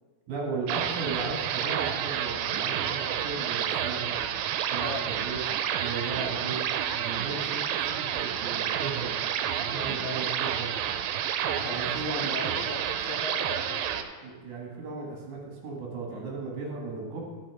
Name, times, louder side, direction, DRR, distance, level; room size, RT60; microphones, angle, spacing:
voice 1, 0.3-4.2 4.7-5.4 5.8-6.7 7.0-9.2 9.5-10.7 11.6-12.4 14.2-17.2, right 4 dB, 60° right, -1 dB, 2.7 m, -36 dB
sound 1, 0.7-14.0, right 10 dB, 80° right, 2.3 m, -30 dB
voice 2, 11.4-14.1 16.1-16.3, left 4 dB, 75° left, 0 dB, 2.3 m, -39 dB
13.0 x 5.5 x 4.7 m, 1.4 s
omnidirectional pair, 4.2 m